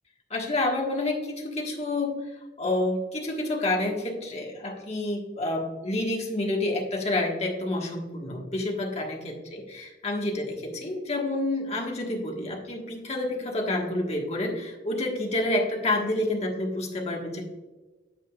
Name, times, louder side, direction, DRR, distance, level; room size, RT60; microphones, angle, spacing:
voice 1, 0.3-17.4, left 2 dB, 35° left, 0 dB, 1.4 m, -29 dB
9.1 x 7.1 x 2.4 m, 1.2 s
head